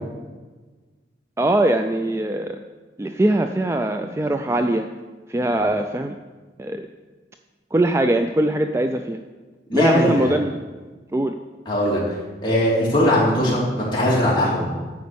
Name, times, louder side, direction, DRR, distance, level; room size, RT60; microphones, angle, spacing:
voice 1, 1.4-2.6 3.0-4.9 5.3-6.2 6.6-6.8 7.7-9.2 9.7-10.6 11.1-11.4, right 1 dB, 15° right, 6 dB, 0.3 m, -21 dB
voice 2, 9.7-10.3 11.7-12.1 12.4-14.6, left 1 dB, 25° left, -6 dB, 3.0 m, -20 dB
9.4 x 5.2 x 7.0 m, 1.3 s
head